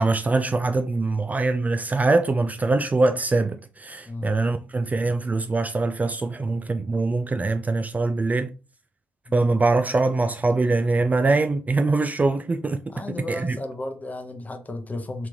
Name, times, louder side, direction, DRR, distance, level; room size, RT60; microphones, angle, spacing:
voice 1, 0.0-8.5 9.3-12.8 13.3-13.6, right 3 dB, 25° right, 0.4 m, -23 dB
voice 2, 4.1-4.4 9.3-9.4 12.9-15.3, left 2 dB, 25° left, 0.8 m, -34 dB
3.4 x 3.0 x 2.7 m
figure-of-eight pair, 40°, 6 cm